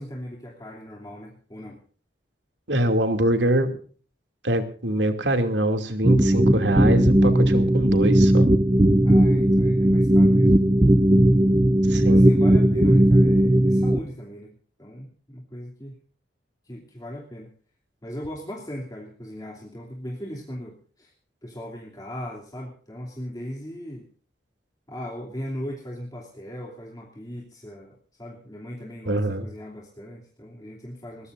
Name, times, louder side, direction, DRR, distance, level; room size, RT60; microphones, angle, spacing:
voice 1, 0.0-1.8 9.0-10.6 12.0-14.5 14.8-16.0 16.6-17.5 18.0-21.1 21.4-24.0 24.9-31.3, equal, 20° left, -2 dB, 2.9 m, -38 dB
voice 2, 2.7-3.8 4.4-8.5 11.9-12.2 29.1-29.4, right 1 dB, 85° right, 6 dB, 2.7 m, -24 dB
sound 1, 6.0-14.0, right 1 dB, 20° right, 0.8 m, -17 dB
22.5 x 20.0 x 2.6 m, 0.43 s
head